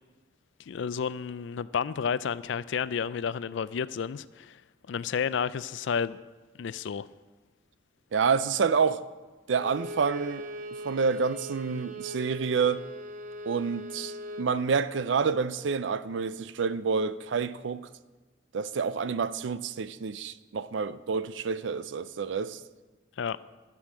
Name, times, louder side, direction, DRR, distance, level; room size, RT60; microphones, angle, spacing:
voice 1, 0.7-4.6 4.9-6.2 6.6-7.1 23.2-23.4, left 6 dB, 75° left, 0.4 m, -31 dB
voice 2, 8.1-9.0 9.5-10.5 10.8-12.8 13.5-17.8 18.5-22.6, right 5 dB, 75° right, 0.5 m, -28 dB
Bowed string instrument, 9.5-14.5, equal, 40° right, 0.7 m, -40 dB
11.5 x 6.3 x 7.6 m
head